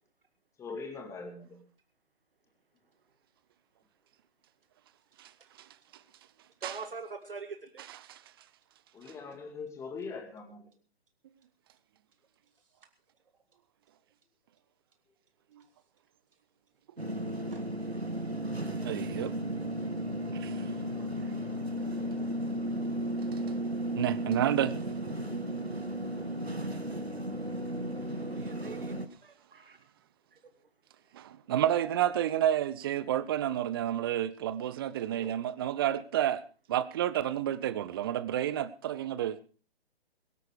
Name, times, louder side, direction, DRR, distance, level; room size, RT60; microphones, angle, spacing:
voice 1, 0.6-1.7 8.9-10.7, left 4 dB, 10° left, 2.3 m, -42 dB
voice 2, 6.6-7.8 17.5-17.6 28.2-28.9 29.2-29.8 30.3-30.4 35.0-35.3, right 4 dB, 60° right, 2.0 m, -44 dB
sound 1, 17.0-29.1, right 1 dB, 85° right, 2.1 m, -34 dB
voice 3, 18.8-19.3 20.3-20.7 24.0-24.7 31.1-36.4 36.7-39.4, right 11 dB, 25° right, 0.7 m, -30 dB
22.5 x 9.1 x 4.9 m
figure-of-eight pair, 130°, 31 cm